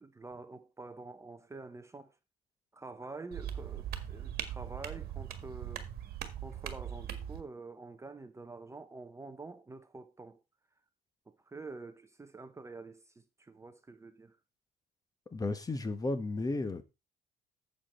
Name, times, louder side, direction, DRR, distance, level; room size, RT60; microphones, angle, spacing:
voice 1, 0.0-2.2 2.7-5.9 6.4-10.4 11.3-14.4, right 3 dB, 15° right, 0.8 m, -47 dB
sound 1, 3.3-7.4, right 10 dB, 65° right, 1.6 m, -40 dB
voice 2, 15.3-16.8, left 2 dB, 20° left, 1.2 m, -33 dB
7.6 x 7.6 x 4.3 m
cardioid pair, 110°, 17 cm